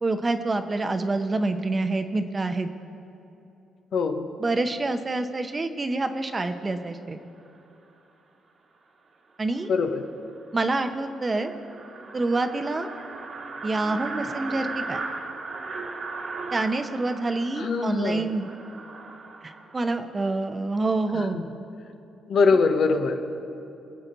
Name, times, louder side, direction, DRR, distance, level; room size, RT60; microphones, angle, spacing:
voice 1, 0.0-2.7 4.4-7.2 9.4-9.7 10.5-11.5 12.1-12.9 13.6-15.0 16.5-18.5 19.4-21.4 22.5-22.6, right 2 dB, 25° right, 8 dB, 0.8 m, -27 dB
voice 2, 3.9-4.3 9.7-10.0 17.6-18.3 21.1-21.4 22.3-23.4, left 4 dB, 65° left, 5 dB, 1.0 m, -23 dB
sound 1, 9.9-10.0 10.3-10.4 10.7-10.8 11.1-19.8, right 3 dB, 50° right, 1.5 m, -37 dB
22.5 x 7.8 x 4.0 m, 2.9 s
cardioid pair, 90°, 0 cm